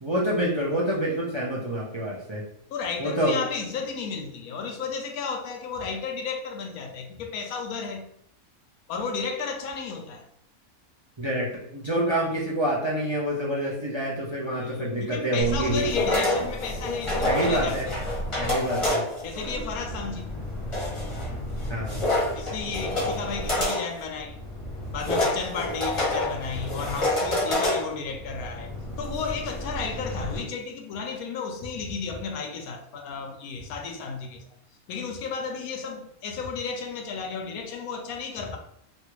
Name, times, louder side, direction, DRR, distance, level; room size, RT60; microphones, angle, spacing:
voice 1, 0.0-2.4 3.0-3.4 11.2-15.9 17.2-17.9 18.4-19.0 21.7-22.0, right 1 dB, 50° right, 0.3 m, -27 dB
voice 2, 2.7-8.0 8.9-10.2 14.5-18.0 19.2-20.3 22.3-24.4 24.9-28.7 29.0-34.4 34.9-38.6, left 5 dB, 85° left, 1.1 m, -33 dB
sound 1, 15.4-30.4, left 1 dB, 25° left, 0.8 m, -29 dB
3.1 x 2.4 x 2.9 m
omnidirectional pair, 1.5 m